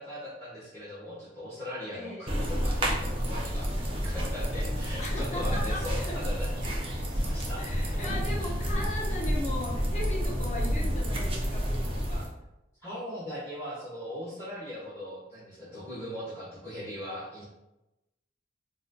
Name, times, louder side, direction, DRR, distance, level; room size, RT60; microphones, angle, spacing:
voice 1, 0.0-6.7 7.1-7.6 7.9-8.0 8.4-8.6 12.8-17.4, left 1 dB, 15° left, -11 dB, 0.9 m, -40 dB
voice 2, 1.9-2.3 5.0-6.2 7.6-12.3, left 1 dB, 40° left, -2 dB, 0.6 m, -38 dB
sound 1, 2.3-12.3, equal, 30° right, 0.5 m, -30 dB
4.0 x 2.5 x 2.2 m, 0.95 s
head